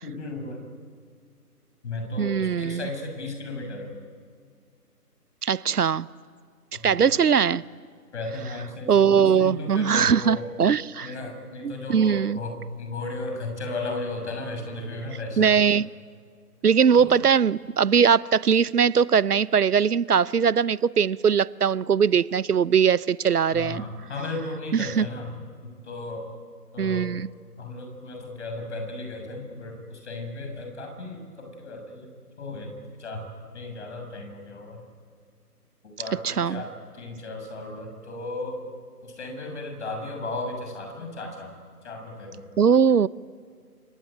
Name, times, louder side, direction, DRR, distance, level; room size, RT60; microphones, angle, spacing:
voice 1, 0.0-0.7 1.8-4.0 6.7-7.1 8.1-10.5 11.0-15.6 17.0-17.2 23.5-26.3 26.7-27.1 27.6-32.1 32.4-32.7 33.0-33.3 33.5-34.8 35.8-38.6 39.0-41.5 41.8-42.5, left 2 dB, 45° left, 5 dB, 6.8 m, -35 dB
voice 2, 2.2-2.8 5.4-6.1 6.8-7.6 8.9-11.1 11.6-12.4 15.4-15.9 16.6-23.8 24.7-25.1 26.8-27.3 36.2-36.6 42.6-43.1, right 7 dB, 75° right, 20 dB, 0.8 m, -21 dB
27.0 x 23.5 x 9.1 m, 2.1 s
figure-of-eight pair, 155°, 47 cm